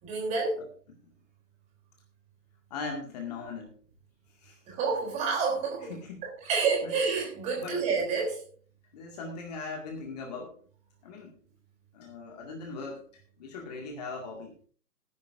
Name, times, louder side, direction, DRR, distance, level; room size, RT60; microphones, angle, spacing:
voice 1, 0.0-0.6 4.7-5.9 6.2-8.4, right 4 dB, 15° right, 0 dB, 3.3 m, -29 dB
voice 2, 2.7-3.8 4.3-4.6 5.8-6.3 6.8-7.0 7.6-7.9 8.9-10.6 11.0-11.4 11.9-14.6, left 4 dB, 25° left, 1 dB, 2.1 m, -40 dB
19.0 x 10.5 x 2.6 m, 0.42 s
figure-of-eight pair, 140°, 50 cm